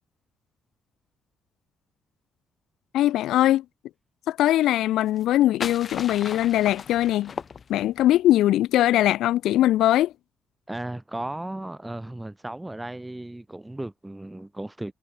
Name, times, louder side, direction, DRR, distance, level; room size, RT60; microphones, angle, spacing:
voice 1, 2.9-3.6 4.3-7.3 7.7-10.1, left 13 dB, 85° left, 0.9 m, -21 dB
sound 1, 5.1-8.1, left 6 dB, 45° left, 2.7 m, -37 dB
voice 2, 10.7-14.9, right 1 dB, 10° right, 1.1 m, -35 dB
cardioid pair, 90°, 0 cm